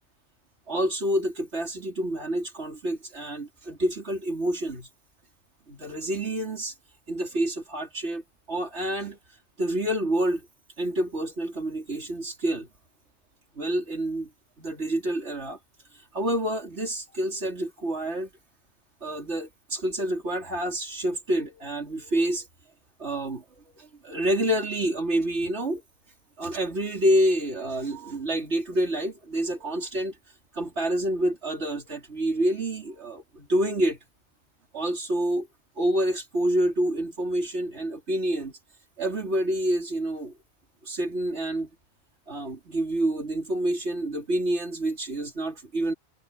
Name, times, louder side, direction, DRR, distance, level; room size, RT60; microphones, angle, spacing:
voice 1, 0.7-4.9 5.7-6.7 7.1-8.2 8.5-9.2 9.6-10.4 10.8-12.7 13.6-14.3 14.6-15.6 16.1-18.3 19.0-22.5 23.0-23.4 23.8-25.8 26.4-30.1 30.5-34.0 34.7-35.5 35.8-38.5 39.0-40.3 40.8-41.7 42.3-45.9, right 1 dB, 75° right, 3.8 m, -28 dB
omnidirectional pair, 1.2 m